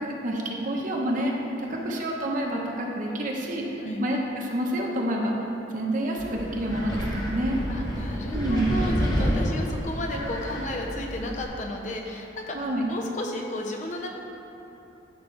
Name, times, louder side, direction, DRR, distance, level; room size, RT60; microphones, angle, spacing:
voice 1, 0.0-3.7 4.0-5.3 5.7-7.6 8.3-8.8 12.5-12.9, right 1 dB, 45° right, -1 dB, 1.0 m, -28 dB
voice 2, 1.6-1.9 3.8-4.1 7.7-12.6 12.9-14.1, left 1 dB, 40° left, 0 dB, 0.8 m, -33 dB
Wind, 6.2-11.4, equal, 25° left, 1.4 m, -29 dB
12.5 x 5.8 x 3.3 m, 2.9 s
head